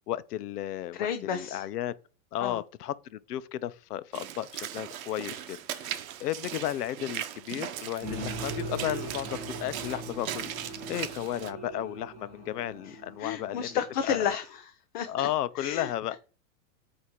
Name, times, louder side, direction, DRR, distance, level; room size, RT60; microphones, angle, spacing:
voice 1, 0.0-1.9 2.3-13.7 14.1-14.4 15.1-16.1, left 12 dB, 85° left, 0.7 m, -34 dB
voice 2, 0.9-1.7 2.4-2.6 12.8-15.3 15.6-16.2, left 8 dB, 35° left, 0.4 m, -32 dB
Walk footsteps / Splash splatter, 4.1-11.5, right 10 dB, 65° right, 0.9 m, -38 dB
sound 1, 8.0-14.3, right 2 dB, 15° right, 2.6 m, -40 dB
8.3 x 2.8 x 4.4 m
supercardioid pair, 155°, 46 cm